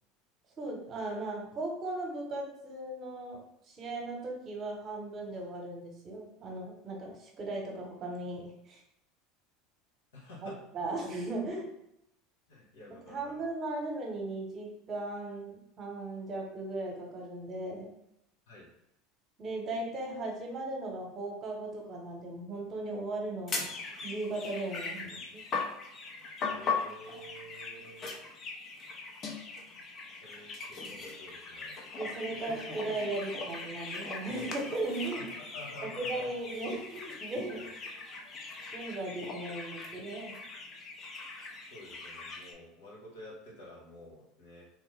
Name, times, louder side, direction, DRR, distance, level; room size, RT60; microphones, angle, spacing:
voice 1, 0.6-3.4 3.7-8.8 10.7-11.7 13.1-17.9 19.4-23.7 24.0-25.4 32.0-35.3 35.8-37.7 38.7-40.3, right 2 dB, 35° right, 1 dB, 0.9 m, -37 dB
voice 2, 10.1-10.6 12.5-13.4 18.5-18.7 26.4-28.1 30.2-31.8 32.3-32.5 35.1-36.3 41.7-44.7, left 1 dB, 90° left, -4 dB, 1.3 m, -50 dB
sound 1, 23.5-42.5, left 4 dB, 40° left, 0.6 m, -40 dB
3.3 x 2.1 x 3.2 m, 0.81 s
supercardioid pair, 105°, 0 cm